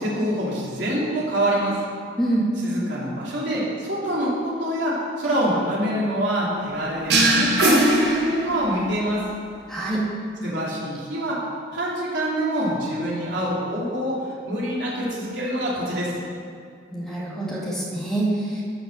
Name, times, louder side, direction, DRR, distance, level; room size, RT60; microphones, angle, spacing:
voice 1, 0.0-1.8 2.6-9.2 10.4-11.4 11.7-16.2, equal, 85° right, -6 dB, 3.3 m, -25 dB
voice 2, 2.2-2.5 9.7-10.0 16.9-18.6, right 1 dB, 5° left, -6 dB, 2.0 m, -25 dB
sound 1, 7.1-8.9, right 1 dB, 70° right, 1.8 m, -19 dB
13.5 x 5.9 x 6.7 m, 2.3 s
head